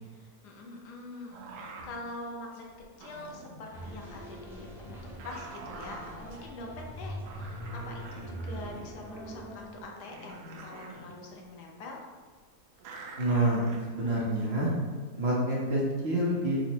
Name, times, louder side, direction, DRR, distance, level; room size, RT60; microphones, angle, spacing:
voice 1, 0.0-2.7 3.0-5.0 5.2-12.0, left 2 dB, 85° left, 0 dB, 1.2 m, -44 dB
sound 1, 1.3-2.0 2.5-3.7 4.7-6.5 7.0-7.1 7.2-9.0 9.6-9.7 10.0-11.1 12.8-14.5 15.7-16.0, right 2 dB, 90° right, 1.2 m, -46 dB
sound 2, 3.7-9.9, right 1 dB, 5° right, 0.4 m, -42 dB
voice 2, 13.2-14.7 15.2-16.6, right 1 dB, 50° right, -5 dB, 0.8 m, -27 dB
3.7 x 2.0 x 4.4 m, 1.5 s
omnidirectional pair, 1.7 m